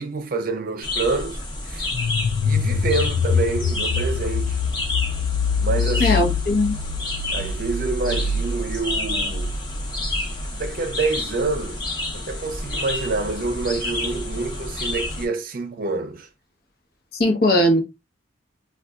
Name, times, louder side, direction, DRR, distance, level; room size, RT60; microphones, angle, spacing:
voice 1, 0.0-1.9 2.4-4.6 5.6-6.2 7.3-9.6 10.5-11.8 12.1-16.3, right 3 dB, 50° right, 0.5 m, -27 dB
sound 1, 0.8-15.3, left 2 dB, 25° left, 0.8 m, -30 dB
sound 2, 1.9-10.6, left 5 dB, 80° left, 0.4 m, -25 dB
voice 2, 6.0-6.8 17.2-17.8, left 1 dB, 55° left, 0.9 m, -18 dB
3.9 x 2.3 x 2.3 m
head